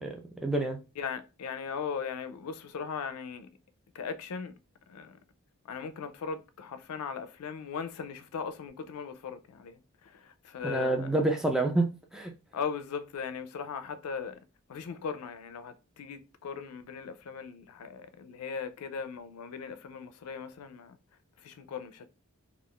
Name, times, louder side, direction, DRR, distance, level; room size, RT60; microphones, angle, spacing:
voice 1, 0.0-0.8 10.6-12.3, right 2 dB, ahead, 0.3 m, -28 dB
voice 2, 1.0-3.5 3.9-4.5 4.9-5.2 5.7-11.2 12.5-14.4 14.7-21.0 21.4-22.1, left 6 dB, 80° left, 0.4 m, -38 dB
2.4 x 2.3 x 3.5 m
head